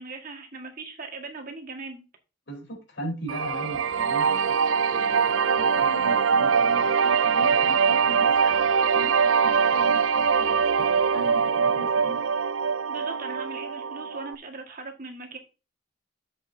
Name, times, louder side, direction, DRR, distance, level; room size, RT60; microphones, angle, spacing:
voice 1, 0.0-2.0 12.9-15.4, right 3 dB, 45° right, 4 dB, 1.8 m, -39 dB
voice 2, 2.5-4.6 4.9-12.2, right 2 dB, 60° left, 1 dB, 4.1 m, -39 dB
sound 1, 3.3-14.3, right 6 dB, 80° right, 0.5 m, -23 dB
11.0 x 7.7 x 2.7 m, 0.32 s
head